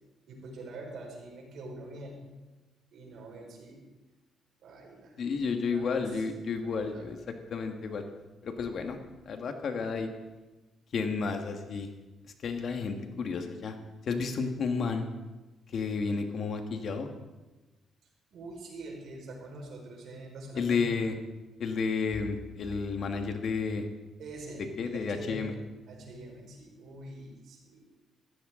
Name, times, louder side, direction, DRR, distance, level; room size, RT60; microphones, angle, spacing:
voice 1, 0.3-2.3 2.9-3.8 4.6-6.2 6.6-7.0 18.3-20.9 24.2-25.5 25.9-27.9, right 2 dB, 70° right, 0 dB, 4.8 m, -45 dB
voice 2, 5.2-7.2 7.5-8.0 8.4-9.0 9.2-10.1 10.9-11.9 12.4-13.7 14.1-15.1 15.7-17.1 20.5-21.1 21.6-23.8 24.8-25.5, left 5 dB, 60° left, 5 dB, 1.6 m, -31 dB
15.0 x 15.0 x 3.8 m, 1.1 s
cardioid pair, 90°, 0 cm